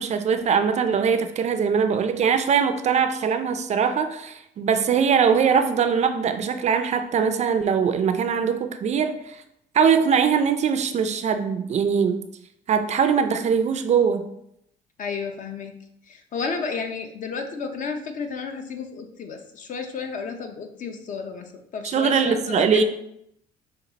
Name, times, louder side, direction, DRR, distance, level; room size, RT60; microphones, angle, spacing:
voice 1, 0.0-9.4 9.7-12.2 12.7-14.3 21.8-22.8, right 6 dB, 40° right, 9 dB, 0.4 m, -21 dB
voice 2, 15.0-15.8 16.1-22.8, left 5 dB, 50° left, 5 dB, 0.7 m, -32 dB
5.2 x 2.4 x 4.0 m, 0.75 s
cardioid pair, 110°, 17 cm